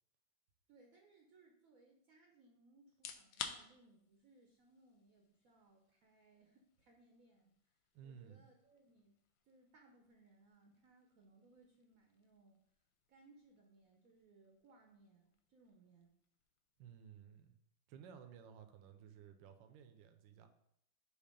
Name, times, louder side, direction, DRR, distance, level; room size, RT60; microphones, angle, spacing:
voice 1, 0.7-7.7 8.0-9.1 9.4-12.6 13.1-16.1, right 3 dB, 60° right, 2 dB, 1.0 m, -67 dB
sound 1, 2.9-17.7, left 7 dB, 80° left, 1.3 m, -56 dB
voice 2, 7.9-8.5 16.8-17.5 17.9-20.5, right 8 dB, 80° right, 6 dB, 1.3 m, -56 dB
6.6 x 2.9 x 5.1 m, 0.74 s
omnidirectional pair, 2.0 m